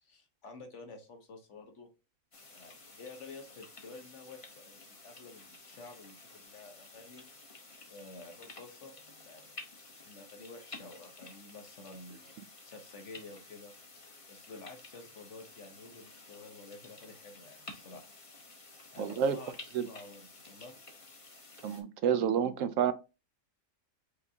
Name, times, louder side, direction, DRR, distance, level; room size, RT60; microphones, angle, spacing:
voice 1, 0.0-1.9 2.5-7.2 7.9-8.9 9.3-12.3 12.6-13.7 14.3-18.1 18.9-19.5 19.8-20.7, left 3 dB, 60° left, 1.4 m, -50 dB
sound 1, 2.3-21.8, left 3 dB, 30° left, 0.8 m, -52 dB
voice 2, 19.0-19.4 19.7-19.9 21.6-22.9, right 8 dB, 75° right, 1.0 m, -29 dB
5.2 x 3.5 x 2.8 m
omnidirectional pair, 1.4 m